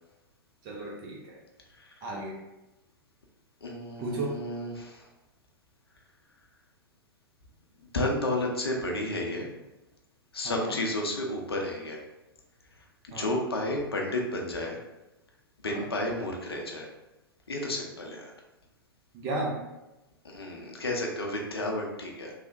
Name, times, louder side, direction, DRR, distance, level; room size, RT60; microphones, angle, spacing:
voice 1, 0.6-1.4 2.0-2.4 4.0-4.4 10.4-10.7 13.1-13.3 15.7-15.8 19.1-19.6, right 2 dB, 30° right, -3 dB, 0.4 m, -34 dB
voice 2, 3.6-5.1 7.8-9.5 10.3-12.0 12.7-12.9 13.1-14.8 15.6-16.9 17.5-18.3 20.2-22.3, left 1 dB, 75° left, 0 dB, 0.6 m, -32 dB
3.1 x 2.0 x 2.5 m, 1.0 s
figure-of-eight pair, 105°, 13 cm